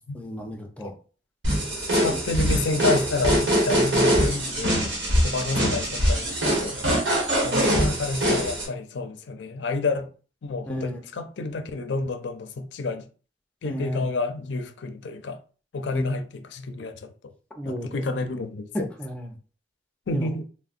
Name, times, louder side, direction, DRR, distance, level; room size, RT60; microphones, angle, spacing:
voice 1, 0.1-0.9 2.1-2.2 5.5-5.6 10.7-11.0 13.6-14.1 15.9-16.1 17.6-18.0 18.7-19.3 20.1-20.3, equal, 5° left, 0.5 m, -33 dB
sound 1, 1.4-8.7, equal, 80° right, 1.1 m, -23 dB
voice 2, 2.0-4.9 5.2-6.8 7.4-10.1 10.4-13.1 13.6-15.4 15.7-17.1 17.6-18.9 20.1-20.5, left 3 dB, 75° left, 0.4 m, -29 dB
3.6 x 2.0 x 2.4 m
head